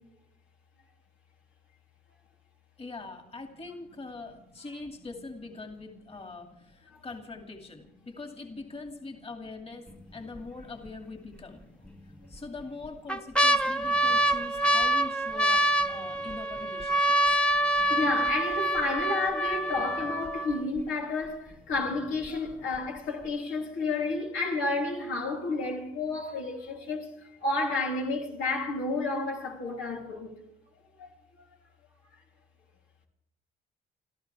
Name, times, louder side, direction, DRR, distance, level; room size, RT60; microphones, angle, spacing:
voice 1, 2.8-9.9 10.1-11.6 12.3-17.2, left 3 dB, 30° left, 2.5 m, -42 dB
sound 1, 9.9-10.4 10.9-11.0 11.9-12.4 12.8-20.8 21.5-21.6 21.8-22.3 22.7-22.8, right 1 dB, 5° left, 0.9 m, -26 dB
voice 2, 17.9-27.1 27.4-30.3 31.0-31.5, left 3 dB, 90° left, 3.3 m, -31 dB
30.0 x 13.5 x 3.5 m
cardioid pair, 90°, 20 cm